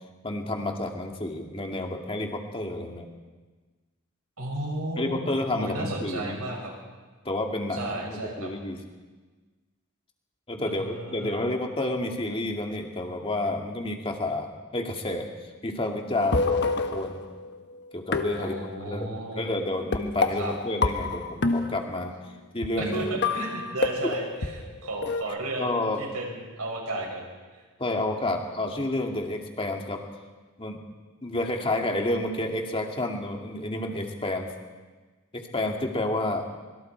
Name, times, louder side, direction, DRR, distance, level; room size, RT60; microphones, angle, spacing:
voice 1, 0.2-3.1 5.0-6.4 7.2-8.8 10.5-15.3 15.6-17.3 17.9-18.6 18.9-19.1 19.4-22.1 22.5-23.0 24.0-24.1 25.6-26.0 27.8-30.0 30.6-30.8 31.2-34.5 35.3-36.4, left 1 dB, 25° left, 2 dB, 2.3 m, -30 dB
voice 2, 4.4-6.7 7.7-8.5 10.6-11.4 18.4-19.5 20.4-20.5 22.8-27.6, right 2 dB, 90° right, -1 dB, 6.8 m, -34 dB
sound 1, 16.2-17.6 18.1-19.0 19.9-22.1 22.6-22.7 22.9-25.2, left 3 dB, 50° left, 1.3 m, -28 dB
25.0 x 23.0 x 4.6 m, 1.3 s
head